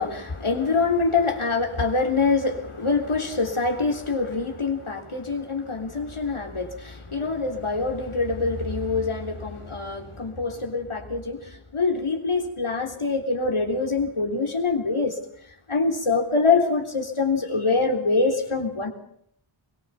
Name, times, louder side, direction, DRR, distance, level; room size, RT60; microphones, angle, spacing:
voice 1, 0.0-15.2 15.7-18.9, left 4 dB, 80° left, 3 dB, 3.8 m, -25 dB
23.0 x 19.5 x 7.1 m, 0.67 s
wide cardioid pair, 45°, 49 cm